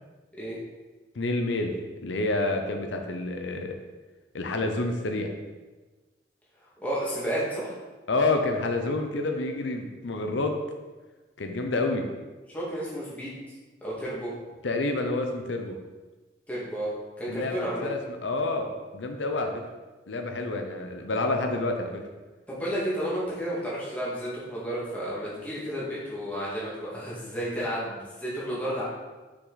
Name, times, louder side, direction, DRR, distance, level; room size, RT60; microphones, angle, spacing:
voice 1, 1.1-3.8 4.3-5.3 8.1-10.6 11.4-12.0 14.6-15.8 17.3-18.7 18.9-19.6 20.1-22.0, left 2 dB, 85° left, 4 dB, 0.7 m, -28 dB
voice 2, 6.8-7.8 12.5-13.4 13.8-14.3 16.5-16.9 17.2-17.9 22.5-28.8, equal, 10° left, -8 dB, 2.0 m, -32 dB
6.1 x 5.9 x 4.0 m, 1.2 s
head